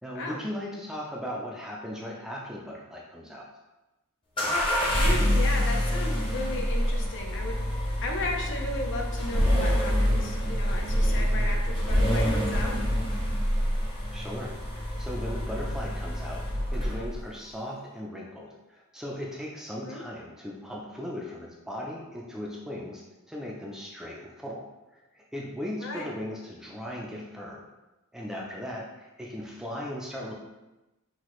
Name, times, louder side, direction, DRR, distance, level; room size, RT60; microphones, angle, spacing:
voice 1, 0.0-3.4 14.1-16.4 16.7-24.6 24.9-27.7 28.1-30.3, left 1 dB, ahead, -3 dB, 0.5 m, -38 dB
sound 1, 4.4-17.2, equal, 25° left, 0.9 m, -26 dB
voice 2, 4.9-12.7 19.8-20.0 25.8-26.1, left 2 dB, 60° left, 1 dB, 0.8 m, -35 dB
5.8 x 2.8 x 3.1 m, 1.0 s
head